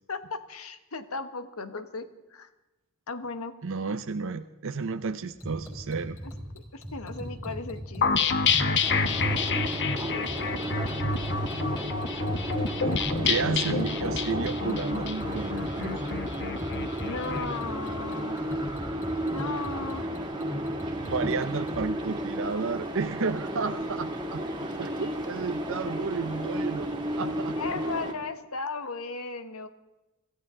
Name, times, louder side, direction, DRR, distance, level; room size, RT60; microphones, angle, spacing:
voice 1, 0.1-2.5 3.1-3.5 6.5-8.3 8.6-9.2 10.1-10.5 17.0-18.4 19.2-20.1 27.6-29.7, left 4 dB, 80° left, 10 dB, 1.2 m, -36 dB
voice 2, 3.6-6.2 13.2-16.0 21.0-24.4 24.8-27.8, right 4 dB, 65° right, 9 dB, 0.6 m, -32 dB
sound 1, 5.3-21.9, equal, 10° left, 5.2 m, -38 dB
sound 2, 8.0-17.5, left 4 dB, 55° left, 1.0 m, -28 dB
sound 3, 8.8-28.1, equal, 20° right, 2.3 m, -34 dB
25.0 x 14.5 x 3.7 m, 1.0 s
head